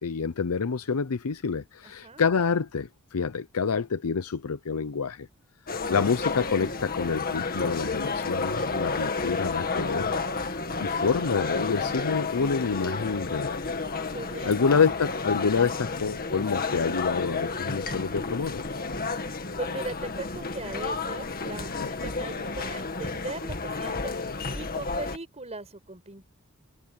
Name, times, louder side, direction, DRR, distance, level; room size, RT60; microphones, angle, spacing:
voice 1, 0.0-5.3 5.9-10.1 10.8-13.8 14.4-18.6 21.7-21.9, left 5 dB, 90° left, 0.6 m, -27 dB
sound 1, 5.7-25.2, left 4 dB, 45° left, 2.0 m, -31 dB
voice 2, 14.1-14.6 19.6-24.1 24.5-26.3, right 2 dB, 30° right, 5.2 m, -38 dB
head